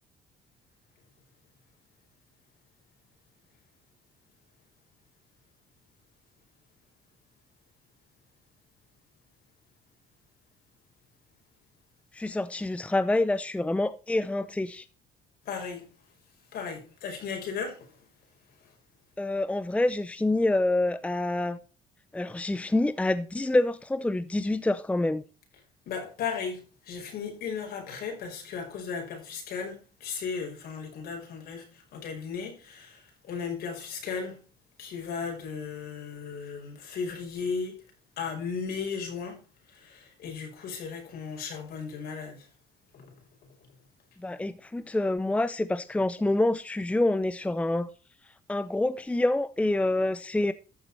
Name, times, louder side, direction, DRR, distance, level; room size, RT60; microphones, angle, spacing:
voice 1, 12.1-14.8 19.2-21.6 22.1-25.2 44.2-47.9 48.5-50.5, left 2 dB, 5° left, 0.7 m, -27 dB
voice 2, 15.5-15.8 16.5-17.9 25.9-34.4 34.8-37.8 38.2-39.4 39.7-42.5 42.9-43.1, left 5 dB, 65° left, 5.7 m, -36 dB
14.0 x 7.3 x 4.2 m
cardioid pair, 110°, 17 cm